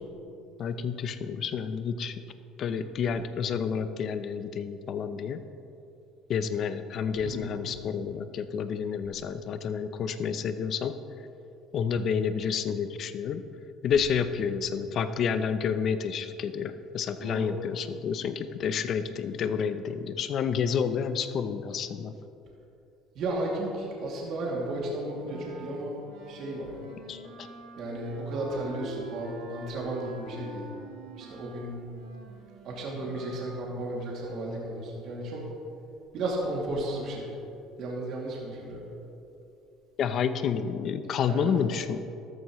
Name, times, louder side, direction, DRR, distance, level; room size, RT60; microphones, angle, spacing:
voice 1, 0.6-2.2 2.6-5.4 6.3-11.0 11.7-13.4 13.8-22.1 27.1-27.5 40.0-42.1, left 7 dB, 50° left, 11 dB, 0.7 m, -29 dB
voice 2, 7.2-7.7 17.2-17.5 23.1-26.0 26.2-26.8 27.8-30.7 31.1-31.8 32.6-35.4 36.1-37.3 37.8-38.8 41.3-41.5, right 1 dB, 60° right, -3 dB, 2.6 m, -34 dB
Wind instrument woodwind instrument, 25.2-33.5, right 2 dB, 85° right, 3.1 m, -45 dB
13.5 x 13.0 x 3.2 m, 2.7 s
cardioid pair, 115°, 0 cm